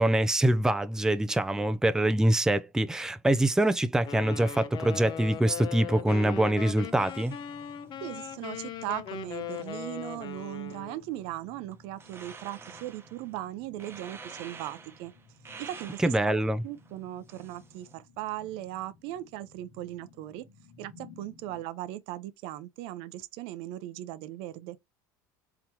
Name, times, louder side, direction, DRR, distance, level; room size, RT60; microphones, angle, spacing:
voice 1, 0.0-7.4 16.0-16.6, right 1 dB, 5° right, 0.5 m, -24 dB
Wind instrument woodwind instrument, 4.1-11.0, left 9 dB, 50° left, 0.9 m, -39 dB
sound 1, 5.2-21.7, left 4 dB, 85° left, 1.8 m, -57 dB
sound 2, 6.8-17.9, right 5 dB, 25° right, 1.0 m, -51 dB
voice 2, 8.0-15.1 15.6-16.1 16.6-20.5 20.8-24.8, right 14 dB, 70° right, 0.6 m, -38 dB
4.5 x 3.7 x 2.9 m
supercardioid pair, 90°, 10 cm